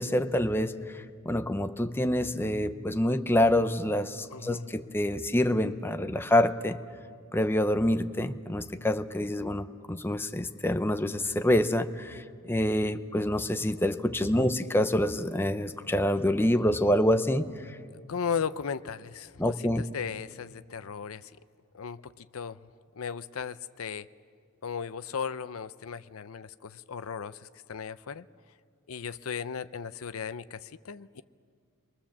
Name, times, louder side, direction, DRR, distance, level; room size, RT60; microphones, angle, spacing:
voice 1, 0.0-6.8 7.3-17.8 19.4-19.8, left 1 dB, 10° left, 9 dB, 0.7 m, -27 dB
voice 2, 4.3-4.7 14.3-14.5 17.9-21.3 21.7-22.6 23.0-24.1 24.6-28.3 28.9-31.2, left 6 dB, 70° left, 14 dB, 0.6 m, -36 dB
29.5 x 23.0 x 7.3 m, 2.2 s
head